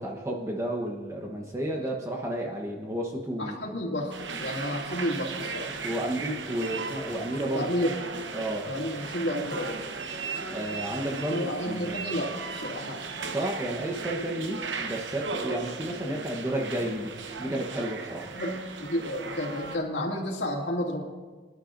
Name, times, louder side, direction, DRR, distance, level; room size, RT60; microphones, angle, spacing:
voice 1, 0.0-3.5 5.8-7.7 8.3-8.7 10.5-12.0 13.2-17.1 17.4-18.3, right 1 dB, 15° right, -1 dB, 1.0 m, -32 dB
voice 2, 3.4-4.1 4.4-5.7 7.5-7.9 8.7-9.8 11.3-13.1 18.3-21.0, equal, 75° left, -2 dB, 2.4 m, -31 dB
sound 1, 4.1-19.8, right 4 dB, 80° right, 1.0 m, -37 dB
25.0 x 11.5 x 2.6 m, 1.4 s
head